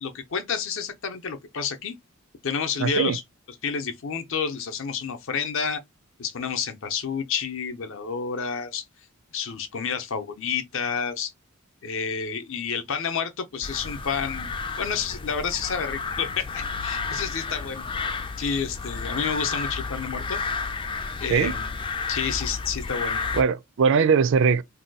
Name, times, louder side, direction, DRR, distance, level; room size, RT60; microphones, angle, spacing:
voice 1, 0.0-2.0 2.4-3.2 3.6-5.8 6.2-8.8 9.3-11.3 11.8-17.9 18.4-20.4 21.2-21.7 22.1-23.2, left 6 dB, 60° left, 0.6 m, -29 dB
voice 2, 2.8-3.2 21.3-21.6 23.3-24.6, right 6 dB, 60° right, 0.4 m, -20 dB
sound 1, 13.6-23.4, left 4 dB, 25° left, 0.3 m, -32 dB
2.7 x 2.2 x 3.9 m
head